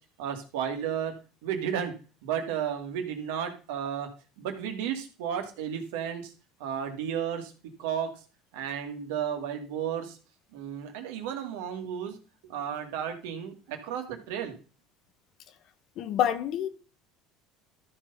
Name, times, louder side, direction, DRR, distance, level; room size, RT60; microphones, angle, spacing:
voice 1, 0.2-1.1 1.4-1.9 2.2-4.1 4.4-6.3 6.6-7.5 7.8-8.1 8.5-10.2 10.5-12.2 12.5-14.5, right 8 dB, 85° right, 2.3 m, -33 dB
voice 2, 16.0-16.7, left 10 dB, 60° left, 1.3 m, -27 dB
13.0 x 4.6 x 5.7 m
supercardioid pair, 95°, 0 cm